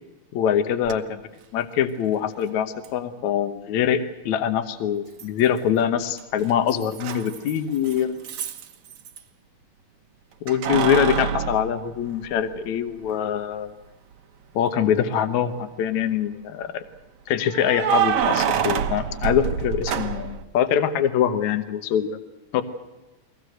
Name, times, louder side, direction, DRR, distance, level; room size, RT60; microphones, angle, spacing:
voice 1, 0.3-1.2 1.5-8.1 10.4-13.7 14.6-16.8 17.3-22.2 22.5-22.6, left 9 dB, 70° left, 10 dB, 2.3 m, -24 dB
Keys jangling, 0.9-1.0 2.8-2.9 5.2-5.7 6.0-9.2 10.5-12.6 13.1-13.2 15.0-15.5 17.5-20.4, right 8 dB, 65° right, 2.4 m, -27 dB
23.0 x 18.0 x 7.9 m, 1.1 s
omnidirectional pair, 3.7 m